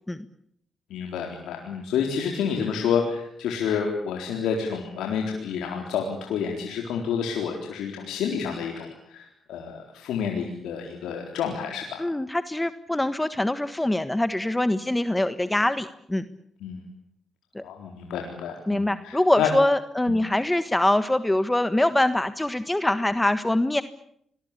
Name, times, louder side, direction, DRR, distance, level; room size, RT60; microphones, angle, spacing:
voice 1, 0.9-12.0 16.6-16.8 17.6-19.5, left 7 dB, 85° left, 2 dB, 4.0 m, -29 dB
voice 2, 12.0-16.2 17.5-17.6 18.7-23.8, left 1 dB, 15° left, 12 dB, 1.5 m, -24 dB
26.5 x 21.5 x 8.4 m, 0.69 s
supercardioid pair, 55°, 0 cm